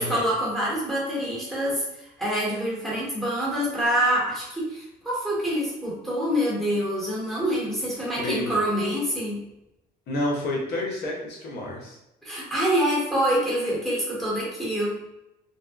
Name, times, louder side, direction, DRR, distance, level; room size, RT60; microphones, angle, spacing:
voice 1, 0.0-9.4 12.2-15.0, equal, ahead, -6 dB, 1.1 m, -26 dB
voice 2, 8.2-8.6 10.1-12.0, left 1 dB, 75° left, -3 dB, 0.8 m, -29 dB
2.7 x 2.2 x 2.3 m, 0.90 s
cardioid pair, 110°, 17 cm